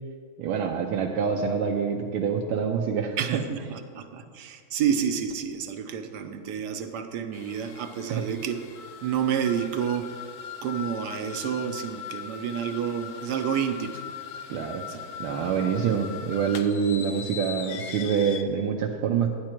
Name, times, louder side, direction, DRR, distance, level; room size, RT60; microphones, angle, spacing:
voice 1, 0.4-3.4 8.1-8.2 14.5-14.9 15.2-19.3, right 7 dB, 85° right, 0 dB, 1.6 m, -26 dB
voice 2, 3.2-8.6 9.0-10.1 10.6-14.0 14.8-15.0, right 8 dB, 65° right, 7 dB, 1.1 m, -29 dB
sound 1, 7.3-18.4, left 8 dB, 85° left, 0.7 m, -40 dB
12.5 x 9.6 x 4.5 m, 2.1 s
omnidirectional pair, 2.3 m